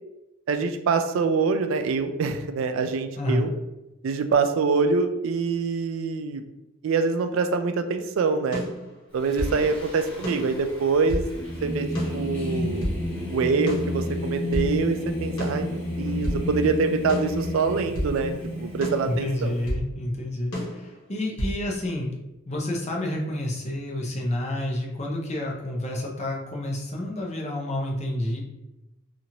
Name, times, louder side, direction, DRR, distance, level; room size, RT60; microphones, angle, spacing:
voice 1, 0.5-3.5 4.0-6.4 6.8-8.6 9.1-11.3 11.6-11.9 12.1-12.9 13.3-19.5, right 4 dB, 65° right, 7 dB, 0.3 m, -25 dB
voice 2, 3.1-3.5 19.0-22.1 22.5-28.4, left 1 dB, 30° left, -1 dB, 0.5 m, -29 dB
sound 1, 8.5-9.6 10.2-11.3 11.9-13.0 13.7-14.7 15.4-16.4 17.1-18.1 18.8-19.9 20.5-21.6, equal, 75° left, 1.1 m, -31 dB
Singing, 9.2-19.6, left 1 dB, 5° left, 0.9 m, -32 dB
2.9 x 2.5 x 2.8 m, 0.97 s
head